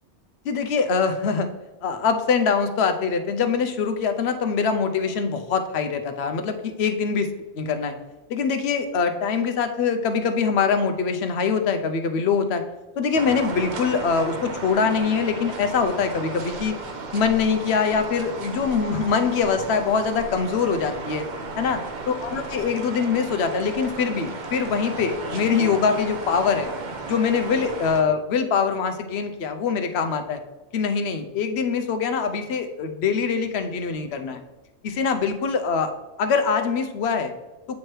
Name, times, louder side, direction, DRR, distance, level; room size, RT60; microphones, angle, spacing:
voice 1, 0.4-1.5 1.8-7.3 7.6-7.9 8.3-12.6 13.0-16.7 17.1-21.3 21.6-21.8 22.1-26.7 27.1-30.4 30.7-34.4 34.8-35.9 36.2-37.3, left 5 dB, 75° left, 7 dB, 0.9 m, -23 dB
sound 1, 13.1-28.0, right 3 dB, 50° right, 0.8 m, -34 dB
8.3 x 3.2 x 4.4 m, 1.1 s
omnidirectional pair, 1.1 m